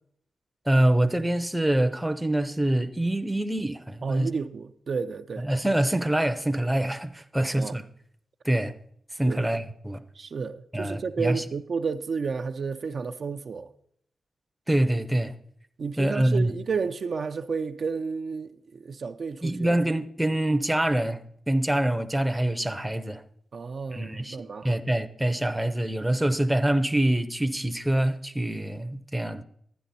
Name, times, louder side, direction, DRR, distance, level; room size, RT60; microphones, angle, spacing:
voice 1, 0.7-4.3 5.4-7.8 8.4-8.7 9.1-10.0 10.7-11.4 14.7-15.4 16.0-16.6 19.4-23.2 23.9-24.4 24.6-29.4, right 1 dB, 5° right, 0.6 m, -25 dB
voice 2, 4.0-5.5 7.5-7.8 9.3-9.5 10.2-13.7 15.8-19.8 23.5-24.8, right 5 dB, 55° right, 0.5 m, -31 dB
11.5 x 9.8 x 4.1 m
wide cardioid pair, 105°, 0 cm